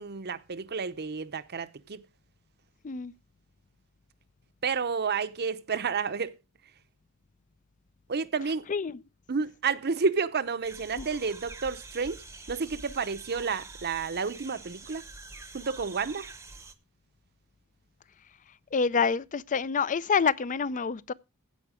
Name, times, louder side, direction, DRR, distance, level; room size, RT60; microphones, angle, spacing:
voice 1, 0.0-2.0 4.6-6.3 8.1-8.7 9.3-12.2 12.5-15.0 15.5-16.3, right 5 dB, 45° right, 0.7 m, -30 dB
voice 2, 8.7-9.0 11.0-11.1 18.7-21.1, left 5 dB, 35° left, 0.5 m, -27 dB
sound 1, 10.6-16.7, right 3 dB, 10° right, 0.8 m, -46 dB
15.5 x 5.7 x 4.9 m
head